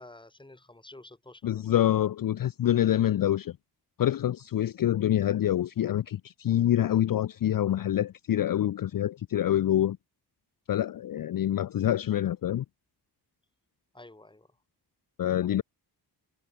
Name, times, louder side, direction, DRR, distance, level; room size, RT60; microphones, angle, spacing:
voice 1, 0.0-1.6 13.9-14.5, left 2 dB, 10° left, 2.0 m, -50 dB
voice 2, 1.4-3.6 4.0-10.0 10.7-12.6 15.2-15.6, left 11 dB, 55° left, 0.5 m, -26 dB
wide cardioid pair, 120°, 41 cm